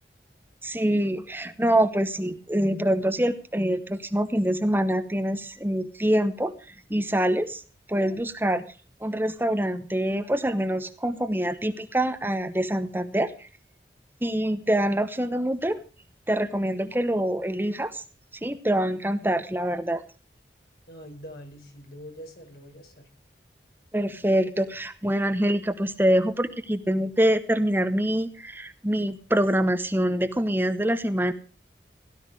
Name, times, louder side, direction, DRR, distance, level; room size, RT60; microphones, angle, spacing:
voice 1, 0.6-7.6 7.9-8.6 9.0-13.5 14.2-15.8 16.3-18.0 18.4-20.0 23.9-31.3, right 1 dB, 10° right, 10 dB, 0.9 m, -25 dB
voice 2, 20.9-23.1, equal, 65° left, 3 dB, 5.3 m, -44 dB
17.0 x 12.5 x 4.9 m, 0.36 s
head